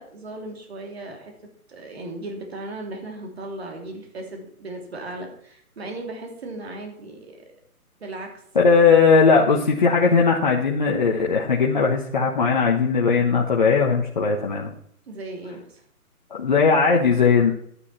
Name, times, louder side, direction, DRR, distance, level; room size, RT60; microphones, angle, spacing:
voice 1, 0.0-1.3 1.7-7.4 8.0-8.3 15.1-15.8, right 2 dB, 45° right, 2 dB, 3.2 m, -36 dB
voice 2, 8.5-14.7 16.3-17.5, left 5 dB, 30° left, -2 dB, 1.2 m, -18 dB
12.0 x 9.6 x 4.3 m, 0.64 s
hypercardioid pair, 170°, 45 cm